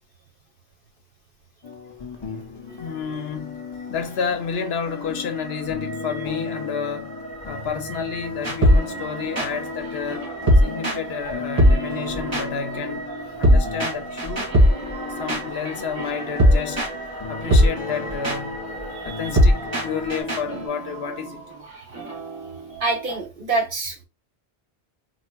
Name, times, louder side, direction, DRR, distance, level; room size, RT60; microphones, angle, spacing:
sound 1, 1.6-20.7, left 6 dB, 40° left, 0.4 m, -36 dB
sound 2, 2.7-20.2, right 2 dB, 10° left, 0.7 m, -38 dB
voice 1, 2.8-7.1 7.4-10.3 10.6-13.1 13.4-14.5 15.1-16.9 17.3-18.7 19.0-21.4, left 6 dB, 75° left, 0.8 m, -30 dB
sound 3, 8.4-11.3 11.6-23.2, equal, 25° right, 1.4 m, -21 dB
voice 2, 18.9-19.4 22.0-22.2 22.8-24.0, right 3 dB, 55° right, 1.0 m, -27 dB
4.3 x 2.3 x 2.2 m
omnidirectional pair, 1.1 m